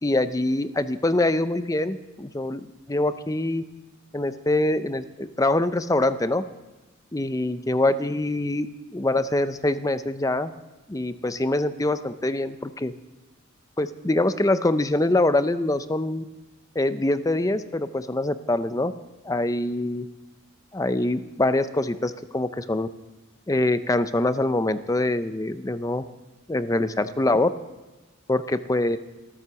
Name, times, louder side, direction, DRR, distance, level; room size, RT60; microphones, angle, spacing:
voice 1, 0.0-3.6 4.1-6.4 7.1-10.5 10.9-12.9 13.8-16.3 16.8-18.9 19.2-20.1 20.7-22.9 23.5-26.0 26.5-27.5 28.3-29.0, left 2 dB, 15° left, 12 dB, 0.5 m, -24 dB
14.0 x 12.5 x 7.0 m, 1.1 s
head